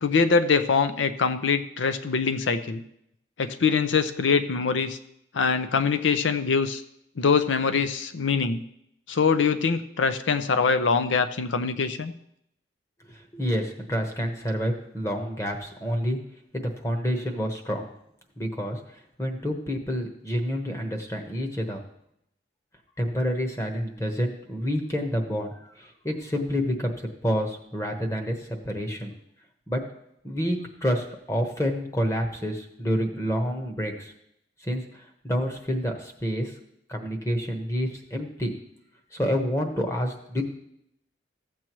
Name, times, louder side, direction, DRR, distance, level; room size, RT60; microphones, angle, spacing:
voice 1, 0.0-2.8 3.4-5.0 5.3-6.8 7.2-8.6 9.1-12.1, left 5 dB, 90° left, 11 dB, 0.6 m, -23 dB
voice 2, 13.1-16.2 16.5-17.9 18.4-21.8 23.0-29.1 29.7-29.8 30.2-34.1 34.6-36.5 36.9-38.5 39.1-40.4, equal, 15° left, 3 dB, 1.1 m, -28 dB
14.5 x 7.5 x 3.1 m, 0.75 s
head